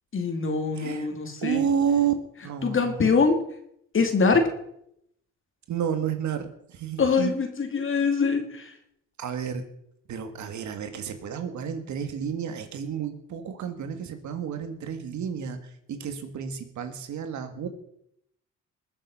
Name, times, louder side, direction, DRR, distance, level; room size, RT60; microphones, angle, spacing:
voice 1, 0.1-1.6 2.6-3.4 3.9-4.5 7.0-8.7, left 4 dB, 45° left, 5 dB, 3.0 m, -23 dB
voice 2, 0.8-1.1 1.4-2.1 2.4-3.1 5.7-7.3 9.2-9.6 10.1-17.7, right 8 dB, 70° right, 8 dB, 2.0 m, -30 dB
21.0 x 7.4 x 5.7 m, 0.74 s
cardioid pair, 90°, 30 cm